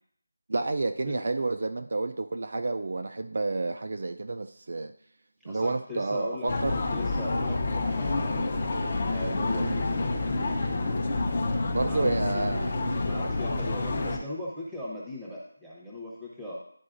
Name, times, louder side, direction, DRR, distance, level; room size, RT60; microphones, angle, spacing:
voice 1, 0.5-4.9 5.4-6.8 9.6-9.8 11.6-12.7, right 3 dB, 45° right, 6 dB, 0.3 m, -30 dB
voice 2, 5.5-6.5 6.9-8.5 9.1-10.1 11.8-12.5 13.1-16.6, left 1 dB, ahead, -7 dB, 0.8 m, -38 dB
sound 1, 6.5-14.2, left 2 dB, 30° left, 0.7 m, -28 dB
11.0 x 4.0 x 2.5 m, 0.65 s
figure-of-eight pair, 175°, 0 cm